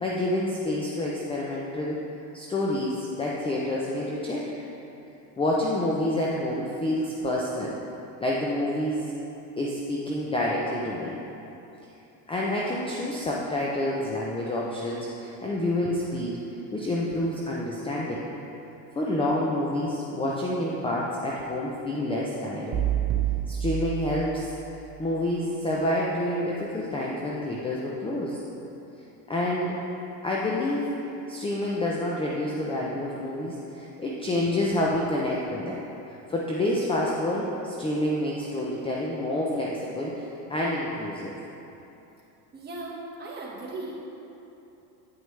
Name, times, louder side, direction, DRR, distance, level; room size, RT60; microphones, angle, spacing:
voice 1, 0.0-2.0 2.3-4.5 5.4-7.7 8.2-9.1 9.6-11.1 12.3-16.4 16.7-18.2 18.9-22.8 23.5-24.5 25.0-28.4 29.3-29.8 30.2-30.9 31.3-35.8 36.3-40.2 40.5-41.3, left 1 dB, 10° left, -4 dB, 0.6 m, -28 dB
sound 1, 22.7-25.0, right 11 dB, 35° right, 0.7 m, -28 dB
voice 2, 42.5-44.1, right 2 dB, 20° right, -4 dB, 1.5 m, -37 dB
8.9 x 6.0 x 3.3 m, 3.0 s
supercardioid pair, 110°, 47 cm